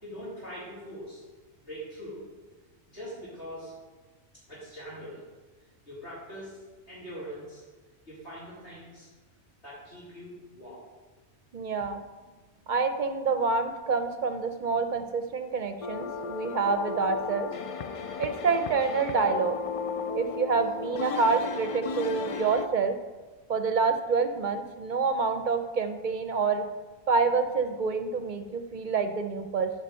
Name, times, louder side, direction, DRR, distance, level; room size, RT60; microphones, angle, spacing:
voice 1, 0.0-1.2 1.7-2.2 2.9-3.7 4.5-5.2 5.9-6.6 6.9-7.6 8.1-9.1 9.6-10.8, equal, 90° left, -13 dB, 3.7 m, -42 dB
voice 2, 11.5-12.0 12.7-17.5 18.2-19.6 20.1-23.0 23.5-26.6 27.1-29.7, right 4 dB, 55° right, 8 dB, 0.7 m, -27 dB
sound 1, 15.8-22.7, left 5 dB, 55° left, 0.3 m, -35 dB
9.6 x 5.1 x 5.6 m, 1.3 s
omnidirectional pair, 1.1 m